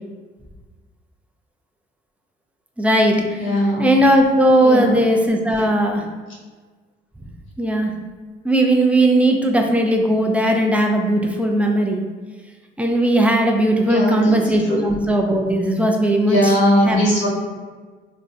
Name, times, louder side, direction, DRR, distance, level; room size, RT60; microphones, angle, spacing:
voice 1, 2.8-3.5 3.8-6.0 7.6-7.9 8.4-12.0 12.8-16.5 16.8-17.0, right 1 dB, 5° right, 1 dB, 0.4 m, -17 dB
voice 2, 3.4-3.8 4.6-4.9 13.8-14.3 14.7-14.9 16.3-17.3, equal, 90° left, -5 dB, 1.2 m, -18 dB
2.5 x 2.1 x 3.6 m, 1.4 s
cardioid pair, 90°, 20 cm